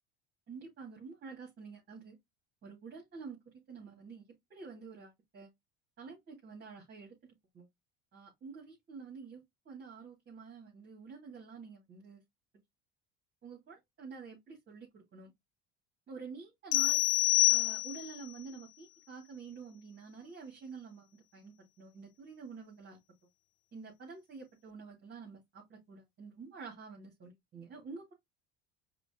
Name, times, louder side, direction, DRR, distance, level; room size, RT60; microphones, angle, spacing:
voice 1, 0.5-2.2 2.6-3.4 3.7-5.5 6.0-7.2 7.5-7.7 8.1-12.2 13.4-15.3 16.1-17.0 17.5-23.0 23.7-28.1, right 5 dB, 35° right, 2.4 m, -48 dB
sound 1, 16.7-18.2, left 21 dB, 85° left, 0.7 m, -27 dB
5.0 x 2.7 x 3.7 m
cardioid pair, 110°, 31 cm